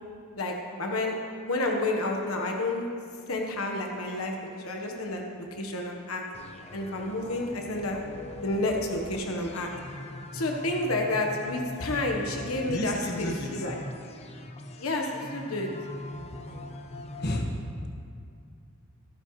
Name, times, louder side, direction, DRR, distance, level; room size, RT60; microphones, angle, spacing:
voice 1, 0.4-1.1 1.4-2.9 3.3-6.2 6.7-8.0 8.4-9.7 10.3-13.8 14.8-15.7, left 2 dB, 85° left, 1 dB, 1.2 m, -30 dB
sound 1, 6.3-17.4, left 1 dB, 30° left, 0.7 m, -41 dB
voice 2, 12.7-13.6 16.5-16.8 17.2-17.4, left 1 dB, 50° left, 0 dB, 1.5 m, -33 dB
25.0 x 9.8 x 3.2 m, 2.3 s
head